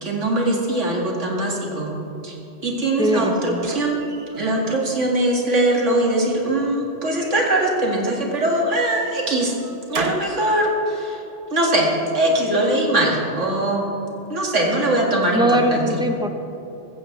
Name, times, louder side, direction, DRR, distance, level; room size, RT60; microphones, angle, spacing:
voice 1, 0.0-1.9 2.2-2.3 2.6-4.0 4.3-9.5 9.9-11.2 11.5-13.9 14.3-15.9, right 1 dB, 85° right, -1 dB, 2.4 m, -21 dB
sound 1, 2.9-4.9 5.3-6.1 7.0-8.5 9.1-10.4, right 5 dB, 50° right, 0.9 m, -36 dB
voice 2, 3.0-3.6 15.3-16.3, equal, 5° right, 4 dB, 0.8 m, -21 dB
15.5 x 15.0 x 3.3 m, 2.9 s
omnidirectional pair, 1.2 m